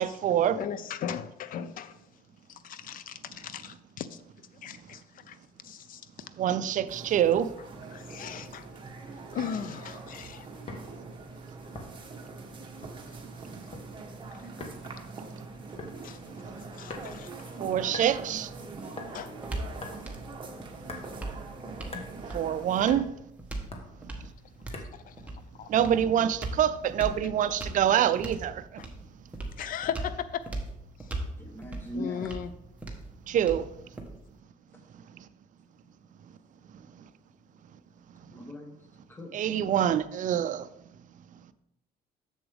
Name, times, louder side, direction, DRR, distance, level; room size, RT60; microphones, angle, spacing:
voice 1, 0.0-0.6 6.3-7.5 13.3-13.5 15.0-15.5 16.3-16.7 17.0-17.1 17.6-18.5 20.9-21.3 22.0-23.1 24.0-24.3 25.7-28.8 33.3-33.9 34.9-35.3 36.7-37.1 38.2-38.4 39.3-40.7 41.3-41.4, right 10 dB, 50° right, 0.4 m, -27 dB
voice 2, 0.5-2.0 2.5-4.2 4.6-5.0 5.3-5.4 5.6-6.0 7.9-8.7 9.3-10.5 13.6-13.7 14.3-14.5 16.0-16.2 16.7-17.5 19.1-19.3 25.1-25.2 25.6-25.7 28.8-28.9 29.6-30.4 31.9-32.5, left 8 dB, 55° left, 0.5 m, -37 dB
sound 1, 6.9-22.9, right 3 dB, 30° right, 1.4 m, -43 dB
sound 2, 10.7-10.9 11.7-12.1 12.8-13.1 13.5-13.9 14.6-14.8 15.8-16.0 16.9-17.3 17.9-18.1 19.0-19.1 19.8-20.0 20.8-21.1 21.9-22.1 22.9-23.0 23.7-23.9 24.7-25.0, left 3 dB, 35° left, 1.4 m, -41 dB
sound 3, 18.4-34.4, right 2 dB, 10° right, 1.2 m, -40 dB
voice 3, 31.4-32.3 38.3-38.8 39.1-39.3, equal, 15° left, 1.1 m, -39 dB
7.1 x 7.0 x 3.5 m
cardioid pair, 110°, 17 cm